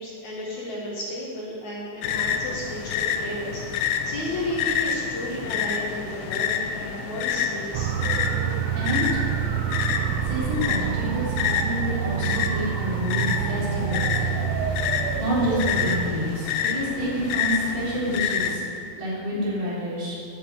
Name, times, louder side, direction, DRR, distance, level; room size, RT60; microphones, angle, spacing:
voice 1, 0.0-7.9, equal, 55° left, -5 dB, 2.1 m, -33 dB
sound 1, 2.0-18.6, left 7 dB, 80° left, 2.6 m, -28 dB
sound 2, 7.7-16.1, right 10 dB, 85° right, 3.2 m, -27 dB
voice 2, 8.8-9.1 10.3-14.9 15.2-18.6 19.0-20.2, equal, 50° right, -7 dB, 5.2 m, -28 dB
12.5 x 8.0 x 8.1 m, 2.5 s
omnidirectional pair, 5.6 m